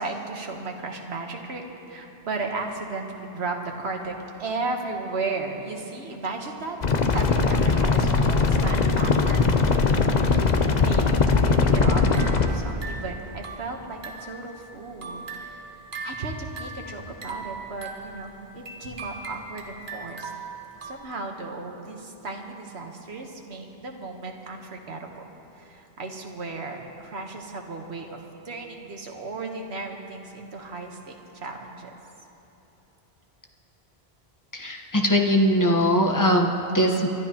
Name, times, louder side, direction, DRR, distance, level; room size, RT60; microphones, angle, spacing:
voice 1, 0.0-4.1 4.4-15.6 16.0-20.3 20.8-25.2 25.6-28.1 28.4-31.9, right 3 dB, 90° right, 2 dB, 1.5 m, -35 dB
sound 1, 6.8-12.5, left 4 dB, 45° left, 0.8 m, -20 dB
sound 2, 11.8-14.4 14.8-21.0, right 4 dB, 55° right, 1.3 m, -39 dB
voice 2, 34.5-37.1, equal, 20° left, 1 dB, 1.1 m, -21 dB
27.5 x 12.0 x 2.9 m, 2.9 s
omnidirectional pair, 1.1 m